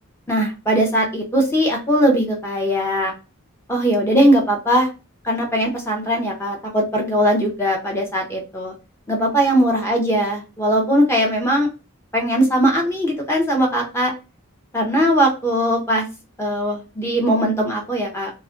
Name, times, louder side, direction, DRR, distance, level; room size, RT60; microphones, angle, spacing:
voice 1, 0.3-3.1 3.7-4.9 5.2-8.7 9.1-11.7 12.1-14.1 14.7-16.1 16.4-18.3, equal, 10° left, 0 dB, 0.6 m, -19 dB
2.4 x 2.1 x 2.4 m, 0.30 s
head